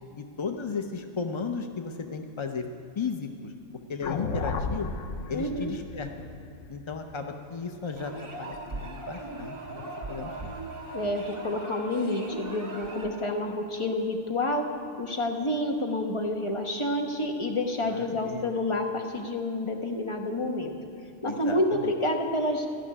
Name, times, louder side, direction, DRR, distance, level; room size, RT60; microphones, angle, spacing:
voice 1, 0.2-2.6 3.0-3.5 3.9-4.9 5.3-6.1 6.7-8.1 8.4-10.6 17.8-18.6 21.3-21.9, left 5 dB, 50° left, 5 dB, 0.3 m, -35 dB
sound 1, 4.0-8.3, left 4 dB, 85° left, 1.1 m, -35 dB
voice 2, 5.3-5.7 10.9-14.7 15.0-20.7 21.2-22.7, left 1 dB, 25° left, 2 dB, 1.0 m, -29 dB
sound 2, 8.0-13.3, right 2 dB, 25° right, 1.8 m, -39 dB
13.0 x 6.2 x 9.7 m, 2.5 s
omnidirectional pair, 1.3 m